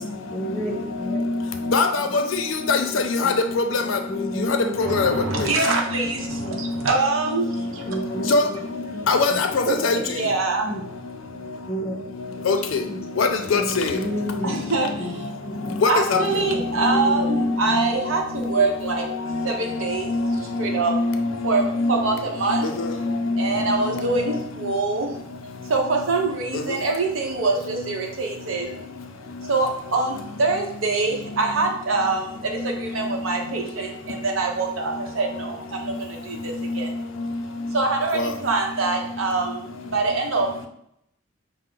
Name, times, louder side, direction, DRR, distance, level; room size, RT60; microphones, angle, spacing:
voice 1, 0.3-1.2 3.2-3.3 4.1-5.0 5.3-5.5 6.4-6.6 7.9-8.6 8.9-9.4 10.6-10.8 11.7-12.0 12.3-12.4 12.9-13.0 13.5-14.6 15.0-15.1 15.4-15.7 16.1-16.5 16.7-17.4, equal, 15° left, -1 dB, 0.8 m, -31 dB
voice 2, 1.7-4.0 4.5-5.2 8.3-8.4 9.1-10.0 12.5-12.8 13.2-14.0 15.8-16.2 16.8-17.8 20.1-20.4 20.9-21.2 21.8-21.9 22.5-23.5 26.5-26.6 38.2-38.3, left 3 dB, 70° left, 6 dB, 0.5 m, -22 dB
voice 3, 4.8-8.3 9.0-9.1 9.6-11.7 14.4-21.0 21.4-22.8 23.3-40.7, right 3 dB, 80° right, 2 dB, 0.8 m, -25 dB
5.5 x 2.0 x 3.8 m, 0.73 s
head